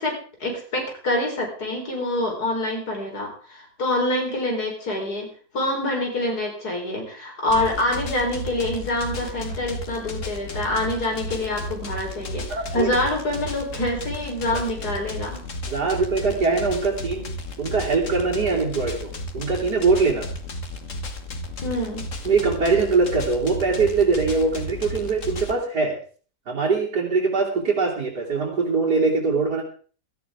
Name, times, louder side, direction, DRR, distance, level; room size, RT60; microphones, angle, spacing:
voice 1, 0.0-12.5 12.7-15.4 21.6-22.1, left 1 dB, 70° left, 1 dB, 4.5 m, -26 dB
sound 1, 7.5-25.5, left 1 dB, 50° left, 1.7 m, -34 dB
voice 2, 12.5-12.9 14.5-14.6 15.7-17.3 17.6-20.3 22.2-25.9 26.5-29.6, right 4 dB, 80° right, -5 dB, 3.4 m, -22 dB
17.0 x 14.0 x 3.6 m, 0.40 s
omnidirectional pair, 1.7 m